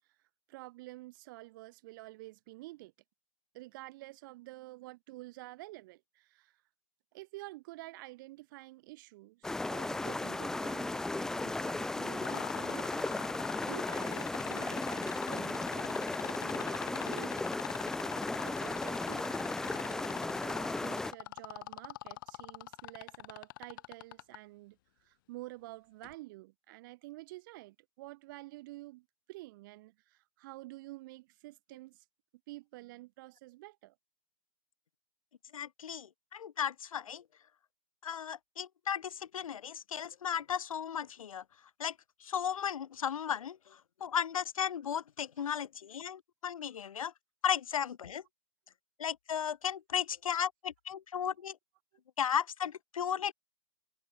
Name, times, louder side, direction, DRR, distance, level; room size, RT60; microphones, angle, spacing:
voice 1, 0.5-2.9 3.5-6.6 7.1-17.6 18.4-32.0 32.5-34.0, right 20 dB, 35° right, 5.7 m, -49 dB
sound 1, 9.4-21.1, left 2 dB, 5° left, 1.2 m, -35 dB
sound 2, 12.2-24.4 26.0-26.1, left 17 dB, 35° left, 1.6 m, -42 dB
voice 2, 35.5-37.2 38.0-41.4 41.8-41.9 42.2-43.6 44.0-47.1 47.4-48.2 49.0-51.6 52.2-53.3, left 8 dB, 70° left, 2.7 m, -35 dB
hypercardioid pair, 160°, 18 cm